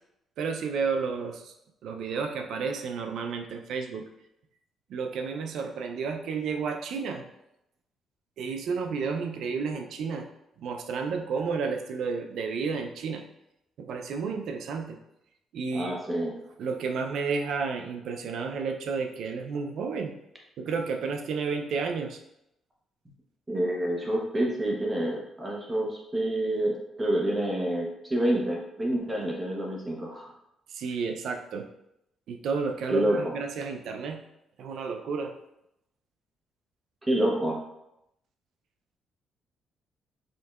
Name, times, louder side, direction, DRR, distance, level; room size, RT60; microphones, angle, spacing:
voice 1, 0.4-1.5 1.8-4.1 4.9-7.3 8.4-10.3 10.6-13.2 13.8-15.0 15.5-15.9 16.6-20.2 20.6-22.2 30.7-31.7 32.3-34.2 34.6-35.3, right 5 dB, 75° right, 5 dB, 0.5 m, -31 dB
voice 2, 15.7-16.3 23.5-30.3 32.9-33.3 37.1-37.6, right 1 dB, 20° right, -2 dB, 1.0 m, -28 dB
5.2 x 2.7 x 2.4 m, 0.83 s
cardioid pair, 90°, 0 cm